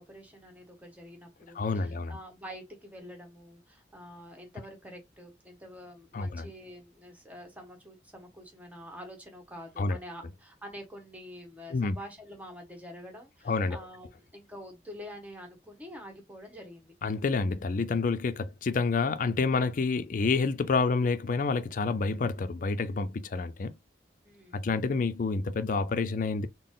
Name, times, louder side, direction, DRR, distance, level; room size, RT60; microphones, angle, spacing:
voice 1, 0.0-16.9 24.2-24.7, equal, 10° right, 1.1 m, -47 dB
voice 2, 1.6-2.2 6.1-6.5 9.8-10.0 11.7-12.0 13.5-13.8 17.0-23.7 24.5-26.5, left 4 dB, 50° left, 0.4 m, -28 dB
4.0 x 2.0 x 3.6 m
head